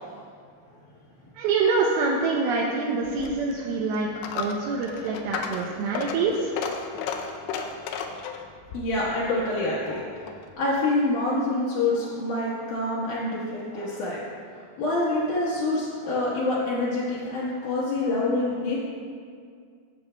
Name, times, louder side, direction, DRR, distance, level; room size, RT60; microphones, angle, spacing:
voice 1, 1.4-4.1 4.4-6.5, right 4 dB, 85° right, -2 dB, 2.2 m, -25 dB
Coin (dropping), 3.0-10.5, left 6 dB, 90° left, 2.9 m, -35 dB
voice 2, 8.7-10.1 10.6-14.2 14.8-18.8, left 2 dB, 65° left, -9 dB, 2.1 m, -26 dB
15.0 x 7.0 x 2.2 m, 2.2 s
omnidirectional pair, 5.1 m